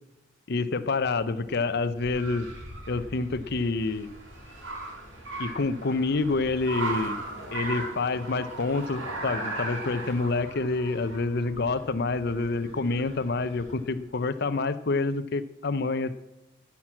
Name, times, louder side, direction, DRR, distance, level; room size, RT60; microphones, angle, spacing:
voice 1, 0.5-2.5 2.9-4.1 5.4-7.2 7.5-16.1, left 3 dB, 55° left, 12 dB, 0.7 m, -27 dB
Car, 1.0-13.9, right 2 dB, 70° right, 4.2 m, -38 dB
14.5 x 6.0 x 7.3 m, 0.99 s
head